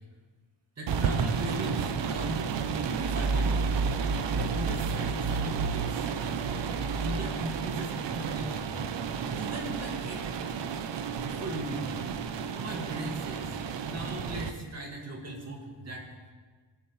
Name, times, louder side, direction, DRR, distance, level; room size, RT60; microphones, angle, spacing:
voice 1, 0.8-2.5 2.9-3.7 4.3-6.1 6.9-8.7 9.3-10.2 11.2-11.9 12.6-16.1, right 1 dB, 30° right, -1 dB, 2.1 m, -38 dB
sound 1, 0.9-14.5, right 5 dB, 60° right, 0.8 m, -31 dB
19.5 x 10.5 x 3.2 m, 1.4 s
wide cardioid pair, 165°, 48 cm